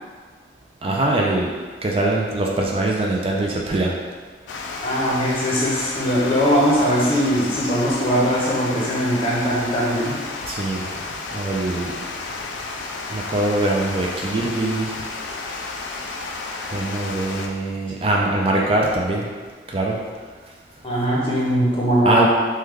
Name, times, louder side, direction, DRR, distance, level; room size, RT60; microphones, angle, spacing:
voice 1, 0.8-1.5 1.8-3.9 10.5-10.8 11.3-12.0 13.1-14.9 16.7-19.3 19.7-20.0 22.0-22.3, right 2 dB, 30° right, -2 dB, 0.3 m, -22 dB
Water, 4.5-17.5, left 3 dB, 85° left, 0.3 m, -32 dB
voice 2, 4.8-10.2 20.8-22.3, equal, 30° left, -5 dB, 0.7 m, -20 dB
3.1 x 2.2 x 3.5 m, 1.5 s
head